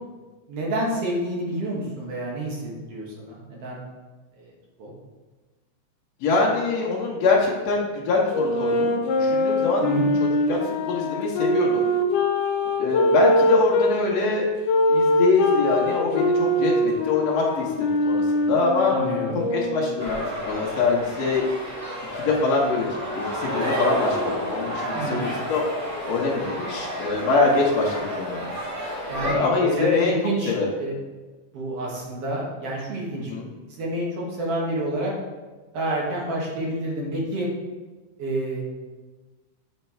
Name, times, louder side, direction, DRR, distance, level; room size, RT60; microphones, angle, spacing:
voice 1, 0.5-3.8 4.4-4.5 4.8-4.9 9.8-10.1 18.9-19.4 24.9-25.3 29.1-30.9 31.5-33.3 33.7-35.1 35.7-37.5 38.2-38.8, right 1 dB, 55° right, -3 dB, 2.3 m, -28 dB
voice 2, 6.2-9.9 10.2-11.9 12.8-14.5 14.9-18.9 19.3-21.4 22.1-25.6 26.1-28.5 29.2-30.1 30.5-30.7 33.3-33.5, left 3 dB, 65° left, -4 dB, 2.0 m, -24 dB
sound 1, 8.3-13.9 14.6-20.2, left 1 dB, 90° left, 2.2 m, -23 dB
sound 2, 20.0-29.3, equal, 10° right, 0.8 m, -30 dB
8.1 x 4.4 x 4.3 m, 1.3 s
omnidirectional pair, 3.6 m